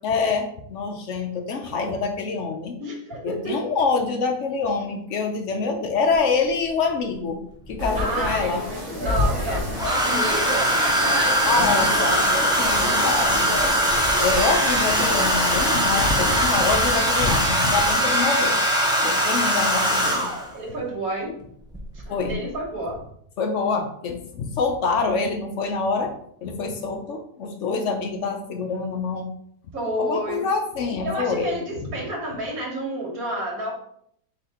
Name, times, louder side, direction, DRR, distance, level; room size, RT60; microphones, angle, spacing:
voice 1, 0.0-2.8 3.2-8.6 11.4-13.8 14.2-18.6 19.0-20.3 22.1-22.4 23.4-26.1 26.4-29.3 30.0-31.6, left 4 dB, 65° left, 4 dB, 0.9 m, -26 dB
voice 2, 2.8-3.6 8.0-8.5 9.0-12.4 12.8-13.4 20.2-21.3 22.1-23.0 29.7-30.5 31.0-33.7, right 1 dB, 80° right, -2 dB, 1.8 m, -30 dB
Domestic sounds home sounds, 6.1-6.2 7.7-8.3 9.7-20.5 21.7-22.0 22.3-22.6, equal, 5° right, 0.4 m, -21 dB
sound 1, 7.8-16.4, left 1 dB, 45° right, 1.1 m, -29 dB
4.2 x 2.8 x 4.3 m, 0.68 s
omnidirectional pair, 1.5 m